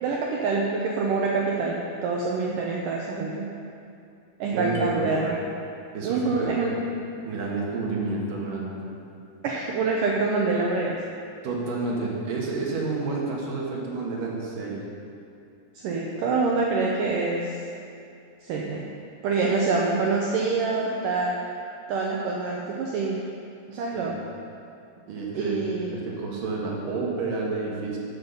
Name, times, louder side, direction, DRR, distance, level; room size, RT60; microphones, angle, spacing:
voice 1, 0.0-3.5 4.4-5.4 6.0-6.7 9.4-11.0 15.8-17.6 18.4-18.8 19.2-21.4 21.9-23.2 23.7-24.2 25.3-25.9, right 3 dB, 85° right, -2 dB, 1.8 m, -26 dB
voice 2, 4.5-5.3 5.9-6.7 7.2-8.9 11.4-14.8 23.7-24.2 25.1-28.0, right 3 dB, 60° right, -3 dB, 2.8 m, -30 dB
sound 1, 4.7-5.9, left 5 dB, 85° left, 1.7 m, -35 dB
12.5 x 8.4 x 5.6 m, 2.5 s
omnidirectional pair, 5.0 m